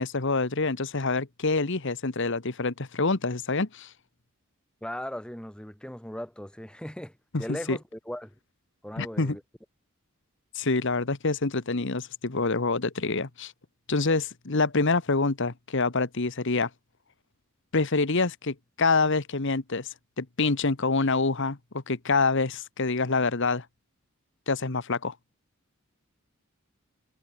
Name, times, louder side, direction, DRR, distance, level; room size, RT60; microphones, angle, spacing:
voice 1, 0.0-3.9 7.3-7.8 9.0-9.4 10.5-13.5 13.9-16.7 17.7-23.7 24.5-25.2, left 3 dB, 60° left, 1.3 m, -26 dB
voice 2, 4.8-8.3 8.8-9.4, equal, 5° left, 1.7 m, -38 dB
head